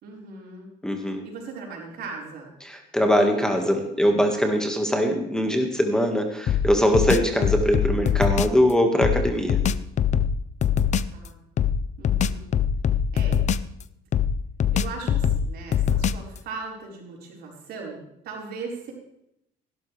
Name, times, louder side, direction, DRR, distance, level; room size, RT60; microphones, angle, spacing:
voice 1, 0.0-0.7 1.2-2.5 11.1-11.4 12.0-12.5 13.1-13.4 14.7-18.9, right 4 dB, 70° right, -2 dB, 4.6 m, -38 dB
voice 2, 0.8-1.2 2.6-9.6, equal, 5° left, 3 dB, 1.7 m, -22 dB
sound 1, 6.5-8.6 9.0-11.2 11.6-13.8 14.1-16.4, left 8 dB, 45° left, 0.5 m, -23 dB
16.0 x 12.5 x 3.4 m, 0.80 s
cardioid pair, 110°, 17 cm